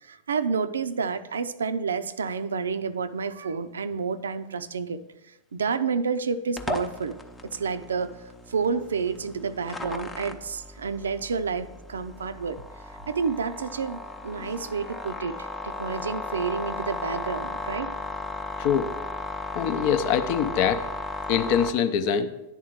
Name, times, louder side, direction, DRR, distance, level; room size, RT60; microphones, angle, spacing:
voice 1, 0.0-5.0 5.5-7.2 7.5-8.1 8.5-12.6 12.9-17.9, right 5 dB, 80° right, 12 dB, 0.4 m, -29 dB
sound 1, 6.6-21.7, left 2 dB, 15° left, 0.7 m, -36 dB
voice 2, 18.6-18.9 19.5-20.8 21.3-22.3, left 8 dB, 50° left, 9 dB, 0.6 m, -24 dB
10.0 x 3.7 x 6.1 m, 0.96 s
hypercardioid pair, 100°, 0 cm